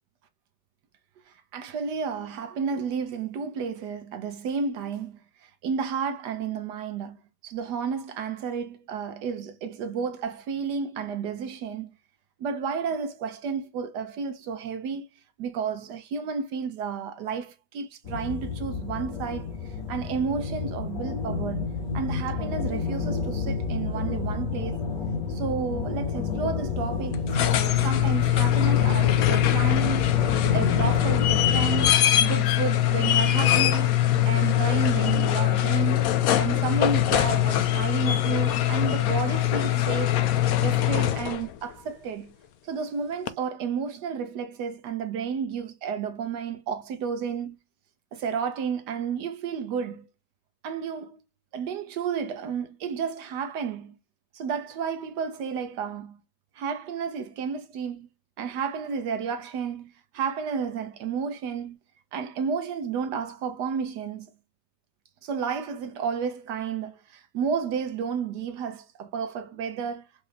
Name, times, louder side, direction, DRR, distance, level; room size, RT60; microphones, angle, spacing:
voice 1, 1.5-7.2 7.4-11.9 12.4-15.1 15.4-19.5 19.9-24.8 25.3-30.1 30.5-31.9 32.2-33.9 34.2-36.0 36.3-40.2 40.6-42.3 42.6-47.6 48.1-50.1 50.6-51.2 51.5-53.9 54.3-56.2 56.6-58.1 58.4-61.8 62.1-64.3 65.2-70.1, right 6 dB, 70° right, 1.2 m, -31 dB
sound 1, 18.0-31.9, left 4 dB, 50° left, 2.1 m, -30 dB
sound 2, 27.1-41.5 43.3-43.4, left 12 dB, 75° left, 0.8 m, -22 dB
4.7 x 2.7 x 3.2 m
omnidirectional pair, 2.0 m